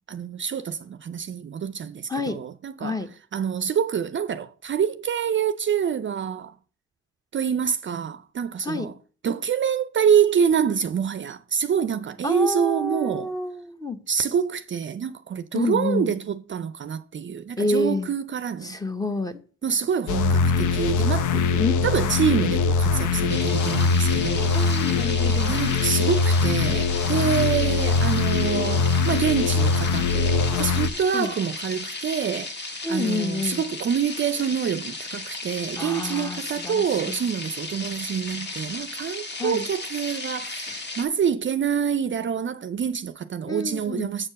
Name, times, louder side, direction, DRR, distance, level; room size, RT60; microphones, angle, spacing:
voice 1, 0.1-3.1 3.3-6.6 7.3-9.0 9.2-13.3 14.1-18.8 19.6-25.0 25.5-44.3, right 7 dB, 40° right, 0.5 m, -26 dB
voice 2, 2.1-2.4 2.8-3.1 8.6-8.9 12.2-14.0 15.5-16.1 17.6-18.1 18.6-19.4 21.6-21.9 24.5-25.6 31.1-31.3 32.8-33.6 35.8-37.2 39.4-39.7 43.4-44.1, left 2 dB, 10° left, 0.9 m, -28 dB
sound 1, 20.1-30.9, left 4 dB, 80° left, 0.7 m, -22 dB
sound 2, 23.3-41.0, left 2 dB, 35° left, 1.5 m, -35 dB
7.5 x 4.4 x 6.3 m
cardioid pair, 90°, 30 cm